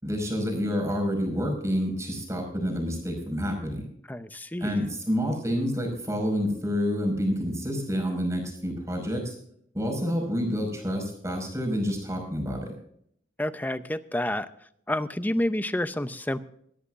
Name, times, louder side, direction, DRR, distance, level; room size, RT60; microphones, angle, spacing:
voice 1, 0.0-3.8 4.6-9.3 9.7-12.7, equal, 15° right, 2 dB, 5.2 m, -28 dB
voice 2, 4.1-4.8 13.4-14.5 14.9-16.4, left 1 dB, 10° left, 12 dB, 0.6 m, -29 dB
20.0 x 14.0 x 2.5 m, 0.68 s
head